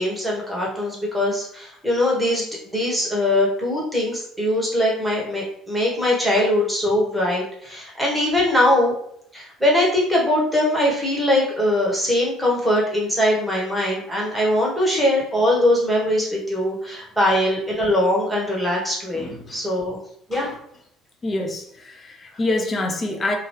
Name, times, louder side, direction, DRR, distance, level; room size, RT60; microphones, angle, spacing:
voice 1, 0.0-8.9 9.3-20.0 20.3-20.5, left 1 dB, 5° right, -3 dB, 1.2 m, -21 dB
voice 2, 19.1-19.6 20.3-20.6 21.2-23.4, left 2 dB, 25° left, 3 dB, 0.6 m, -26 dB
2.9 x 2.3 x 3.1 m, 0.68 s
supercardioid pair, 100°, 0 cm